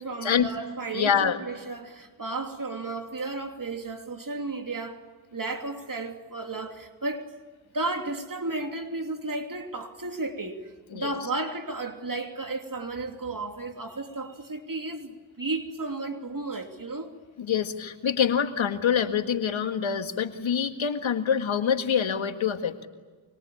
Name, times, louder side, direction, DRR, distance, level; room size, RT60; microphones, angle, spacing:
voice 1, 0.0-5.0 5.3-7.3 7.7-17.2, right 3 dB, 45° right, 2.9 m, -33 dB
voice 2, 0.9-1.4 10.9-11.1 17.4-22.9, left 7 dB, 75° left, 2.0 m, -25 dB
26.0 x 25.0 x 8.7 m
supercardioid pair, 40°, 47 cm